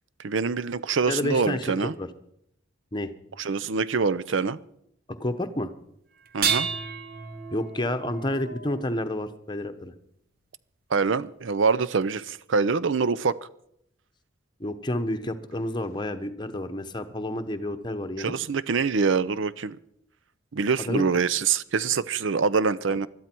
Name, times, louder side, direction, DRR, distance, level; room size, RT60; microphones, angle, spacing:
voice 1, 0.2-1.9 3.4-4.6 6.3-6.7 10.9-13.4 18.2-19.8 20.5-23.1, right 5 dB, 70° right, 0.6 m, -25 dB
voice 2, 1.0-2.1 2.9-3.1 5.1-5.7 7.5-9.9 14.6-18.3 20.8-21.1 22.9-23.0, left 1 dB, 20° left, 1.0 m, -30 dB
sound 1, 6.2-9.5 11.1-11.2 12.0-12.1, right 6 dB, 50° right, 1.1 m, -32 dB
20.5 x 12.5 x 4.5 m
head